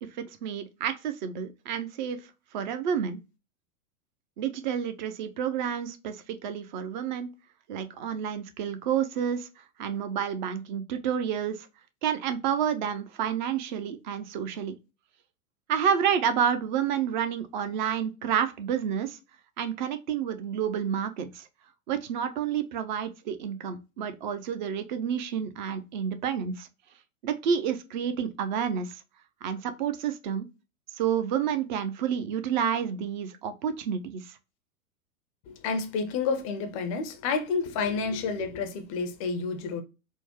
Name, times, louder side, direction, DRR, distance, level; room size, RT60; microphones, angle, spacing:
voice 1, 0.4-2.2 2.5-3.2 4.4-7.3 7.7-9.5 9.8-11.7 12.0-14.8 15.7-19.2 19.6-21.5 21.9-26.7 27.2-29.0 29.4-30.5 31.0-34.4, right 8 dB, 35° right, 0.5 m, -29 dB
voice 2, 35.5-39.8, left 4 dB, 25° left, 0.4 m, -30 dB
4.4 x 2.0 x 2.8 m
figure-of-eight pair, 100°, 42 cm